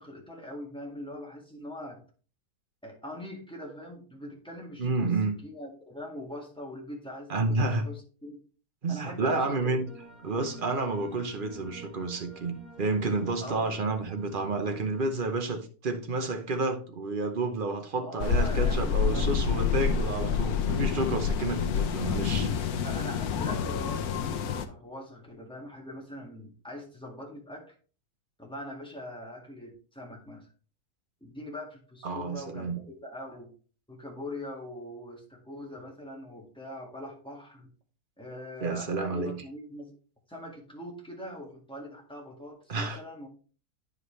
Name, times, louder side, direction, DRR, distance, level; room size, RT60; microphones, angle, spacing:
voice 1, 0.0-2.0 2.8-5.1 5.4-8.4 8.9-9.8 13.4-13.7 18.0-19.4 22.8-27.7 28.4-30.5 31.2-33.5 33.9-37.7 38.2-39.9 40.3-43.3, left 1 dB, 5° left, 1.8 m, -42 dB
voice 2, 4.8-5.4 7.3-7.9 8.8-9.9 10.2-22.7 32.0-32.8 38.6-39.3 42.7-43.0, right 3 dB, 40° right, 1.0 m, -30 dB
sound 1, 9.9-15.1, right 2 dB, 70° right, 2.4 m, -49 dB
sound 2, 18.2-24.7, left 6 dB, 80° left, 1.2 m, -28 dB
9.5 x 5.1 x 3.2 m
omnidirectional pair, 1.6 m